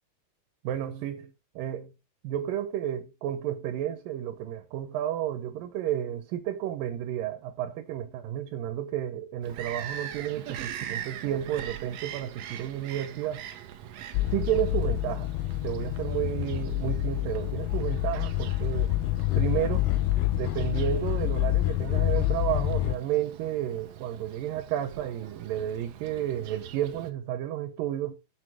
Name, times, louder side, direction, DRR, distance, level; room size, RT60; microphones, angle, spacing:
voice 1, 0.6-1.9 2.2-13.4 14.3-15.3 15.6-18.9 19.4-19.9 20.4-28.1, right 11 dB, 90° right, 2.6 m, -32 dB
Bird vocalization bird call bird song, 9.4-27.1, right 10 dB, 70° right, 1.7 m, -43 dB
sound 1, 14.1-23.0, left 16 dB, 80° left, 1.9 m, -27 dB
6.3 x 6.0 x 6.1 m
omnidirectional pair, 3.9 m